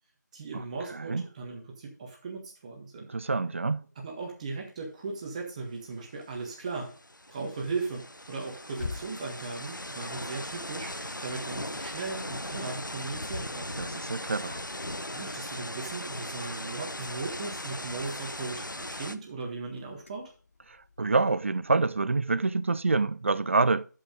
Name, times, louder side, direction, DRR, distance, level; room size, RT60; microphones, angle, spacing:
voice 1, 0.3-3.1 3.9-6.9 7.3-13.8 15.1-20.3, right 4 dB, 20° right, 1.5 m, -37 dB
voice 2, 3.1-3.8 13.8-14.6 21.0-23.8, right 3 dB, 40° right, 0.5 m, -26 dB
sound 1, 5.9-12.4 12.9-22.7, left 4 dB, 40° left, 1.3 m, -50 dB
sound 2, 6.2-6.3 6.6-19.2, left 1 dB, 90° left, 1.0 m, -38 dB
12.5 x 5.4 x 3.7 m
figure-of-eight pair, 160°, 10 cm